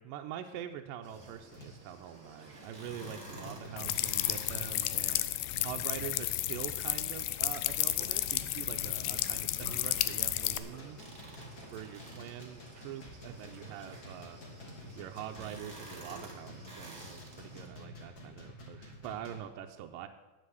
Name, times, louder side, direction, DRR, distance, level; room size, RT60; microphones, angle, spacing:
voice 1, 0.0-11.0 11.7-14.4 15.0-20.1, right 10 dB, 85° right, 5 dB, 2.3 m, -44 dB
sound 1, 0.5-0.8 1.5-1.9 2.3-2.5 2.8-7.0 7.6-19.4, left 1 dB, 35° left, 1.9 m, -50 dB
sound 2, 1.0-17.7, right 2 dB, 20° right, 1.9 m, -52 dB
sound 3, 3.8-10.6, left 15 dB, 80° left, 2.0 m, -32 dB
9.8 x 7.6 x 7.9 m, 1.1 s
omnidirectional pair, 3.9 m